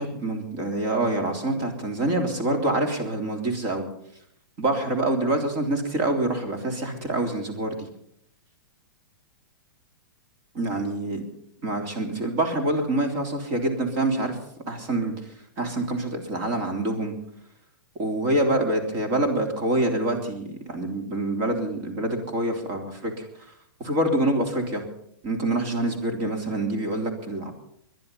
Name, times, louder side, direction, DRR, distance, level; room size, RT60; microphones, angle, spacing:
voice 1, 0.0-3.9 4.6-7.9 10.5-11.2 11.6-14.4 14.7-15.3 15.6-17.2 18.0-23.3 23.8-24.8 25.2-27.5, right 1 dB, 30° right, 4 dB, 3.4 m, -26 dB
22.0 x 11.0 x 5.6 m, 0.73 s
supercardioid pair, 165°, 12 cm